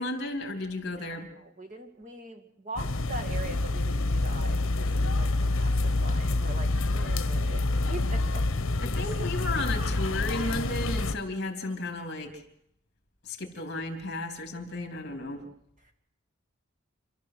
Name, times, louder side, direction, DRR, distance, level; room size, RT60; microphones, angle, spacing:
voice 1, 0.0-1.3 8.8-12.3 13.2-15.4, left 2 dB, 50° left, 4 dB, 3.3 m, -34 dB
voice 2, 1.0-8.5 15.0-15.5 15.8-15.9, right 2 dB, 35° right, 5 dB, 2.3 m, -42 dB
sound 1, 2.8-11.1, left 2 dB, 75° left, 1.1 m, -27 dB
27.5 x 13.0 x 7.7 m, 0.77 s
head